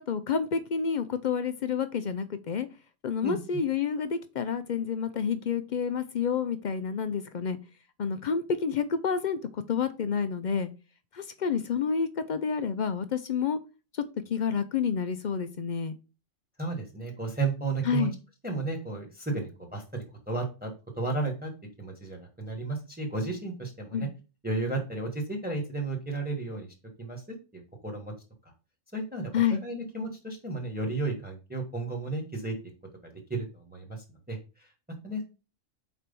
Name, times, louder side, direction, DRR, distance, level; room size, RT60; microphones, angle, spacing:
voice 1, 0.0-2.7 3.0-7.6 8.0-10.7 11.1-13.6 13.9-14.0 14.3-16.0 17.8-18.1 23.9-24.1 29.3-29.6, left 6 dB, 60° left, 10 dB, 0.5 m, -29 dB
voice 2, 16.6-18.1 18.4-20.7 21.0-21.5 21.8-24.1 24.4-26.7 27.0-27.2 27.5-28.1 28.9-32.6 33.0-34.7 35.0-35.2, right 3 dB, 10° right, 1 dB, 1.2 m, -33 dB
4.4 x 4.1 x 5.2 m, 0.32 s
omnidirectional pair, 1.3 m